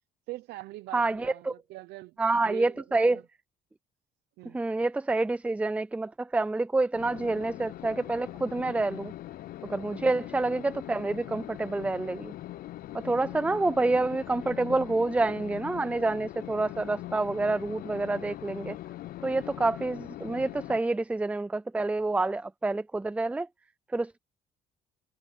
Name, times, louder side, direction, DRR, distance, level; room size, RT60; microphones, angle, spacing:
voice 1, 0.3-2.2 2.4-3.2 4.4-4.6 9.9-10.2 13.5-13.8, right 18 dB, 80° right, 0.7 m, -43 dB
voice 2, 0.9-1.5 2.2-3.2 4.5-9.1 9.7-12.3 12.9-18.8 19.2-23.5 23.9-24.2, right 2 dB, 10° right, 0.4 m, -28 dB
sound 1, 6.9-20.8, left 14 dB, 60° left, 0.5 m, -41 dB
cardioid pair, 110°, 17 cm